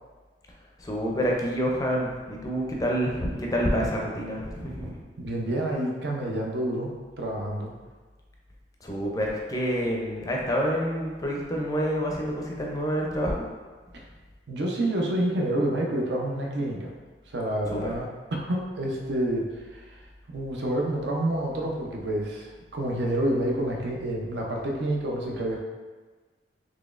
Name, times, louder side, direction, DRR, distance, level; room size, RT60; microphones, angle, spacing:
voice 1, 0.8-5.0 8.8-13.4 17.7-17.9, equal, 20° left, -2 dB, 0.4 m, -28 dB
voice 2, 5.2-7.7 13.9-14.0 14.5-16.9 17.3-20.0 20.3-25.6, right 1 dB, 70° right, -1 dB, 0.5 m, -28 dB
4.0 x 3.0 x 2.4 m, 1.4 s
head